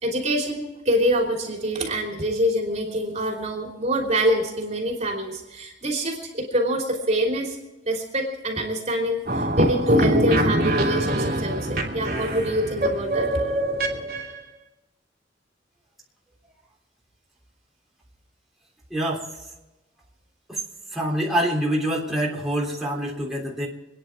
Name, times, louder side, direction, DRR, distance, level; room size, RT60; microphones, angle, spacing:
voice 1, 0.0-7.6 7.8-13.3, equal, 40° right, 1 dB, 3.2 m, -25 dB
sound 1, 9.3-14.4, right 1 dB, 55° right, 2.8 m, -23 dB
voice 2, 18.9-19.2 20.5-20.6 20.9-23.7, right 1 dB, ahead, -4 dB, 3.3 m, -25 dB
27.0 x 10.0 x 4.7 m, 1.1 s
head